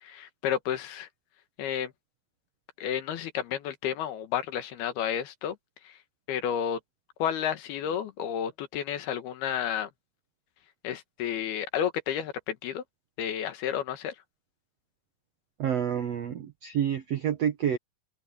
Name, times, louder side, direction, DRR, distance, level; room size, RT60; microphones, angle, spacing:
voice 1, 0.0-1.1 1.6-1.9 2.8-5.6 5.9-6.0 6.3-6.8 7.2-9.9 10.8-12.8 13.2-14.1, left 9 dB, 75° left, 3.4 m, -31 dB
voice 2, 15.6-17.8, right 9 dB, 70° right, 1.5 m, -28 dB
omnidirectional pair, 4.6 m